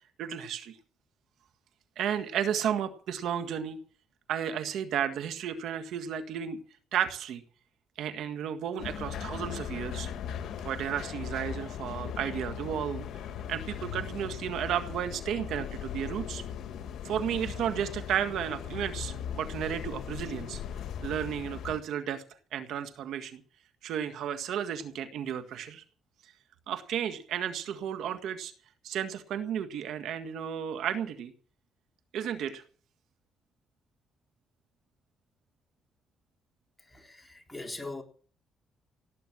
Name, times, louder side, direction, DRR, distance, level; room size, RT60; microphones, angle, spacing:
voice 1, 0.2-0.8 2.0-3.8 4.3-6.6 6.9-7.4 8.0-10.1 10.6-13.1 13.5-16.4 17.0-20.6 21.0-22.2 22.5-23.4 23.8-25.8 26.7-28.5 28.8-31.3 32.1-32.6, right 9 dB, 80° right, 1.8 m, -33 dB
sound 1, 8.8-21.8, left 8 dB, 75° left, 1.8 m, -38 dB
voice 2, 36.8-38.0, left 2 dB, 10° left, 3.6 m, -41 dB
17.5 x 9.1 x 7.3 m
cardioid pair, 90°, 0 cm